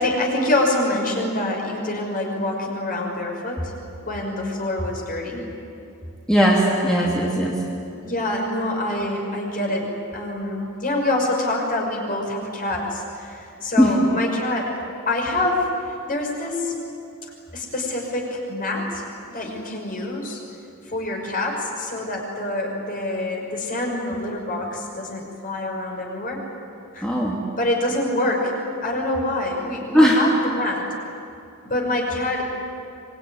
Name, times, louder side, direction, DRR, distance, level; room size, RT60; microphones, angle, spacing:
voice 1, 0.0-3.7 4.1-5.4 8.0-14.7 15.1-16.7 17.5-19.0 19.3-20.4 20.9-26.5 26.9-27.1 27.6-28.5 28.8-30.8 31.6-32.4, left 1 dB, 40° left, 0 dB, 5.7 m, -26 dB
voice 2, 6.3-7.6 13.8-13.9 27.0-27.4 29.9-30.2, equal, 5° left, -5 dB, 3.0 m, -18 dB
25.0 x 22.0 x 9.7 m, 2.6 s
head